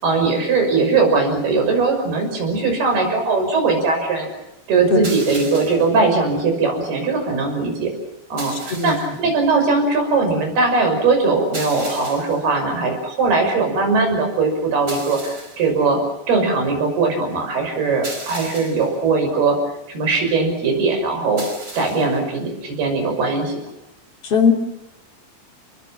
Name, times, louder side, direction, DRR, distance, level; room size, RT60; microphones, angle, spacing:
voice 1, 0.0-4.3 4.7-7.9 8.3-16.0 16.3-19.6 19.9-21.4 21.8-23.6, right 4 dB, 80° right, 4 dB, 8.0 m, -20 dB
voice 2, 4.9-5.0 8.7-9.0 24.2-24.5, left 5 dB, 40° left, 3 dB, 3.2 m, -17 dB
sound 1, 5.0-6.0 8.4-9.2 11.5-12.5 14.9-15.7 18.0-19.0 21.4-22.2, right 2 dB, 20° right, 5.0 m, -35 dB
29.0 x 22.0 x 7.3 m, 0.87 s
omnidirectional pair, 4.4 m